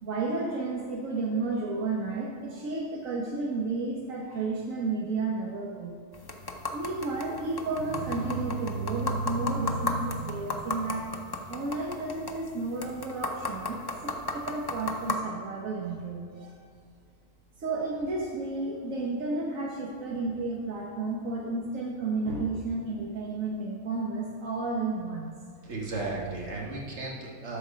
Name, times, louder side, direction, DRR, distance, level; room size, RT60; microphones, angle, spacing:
voice 1, 0.0-5.9 6.7-11.2 11.5-16.5 17.6-25.3, right 3 dB, 80° right, -2 dB, 1.4 m, -32 dB
sound 1, 6.1-15.1, left 3 dB, 35° left, 0.4 m, -35 dB
voice 2, 25.6-27.6, right 3 dB, 60° right, -3 dB, 1.9 m, -35 dB
13.0 x 4.7 x 5.0 m, 2.1 s
omnidirectional pair, 1.4 m